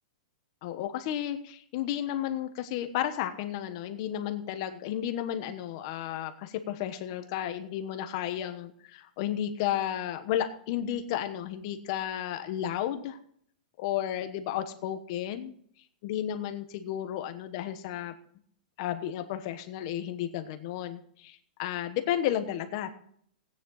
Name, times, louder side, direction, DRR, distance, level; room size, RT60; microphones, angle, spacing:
voice 1, 0.6-13.2 13.8-15.5 16.0-18.1 18.8-22.9, left 11 dB, 35° left, 9 dB, 1.2 m, -33 dB
16.5 x 9.7 x 4.0 m, 0.62 s
supercardioid pair, 175°, 5 cm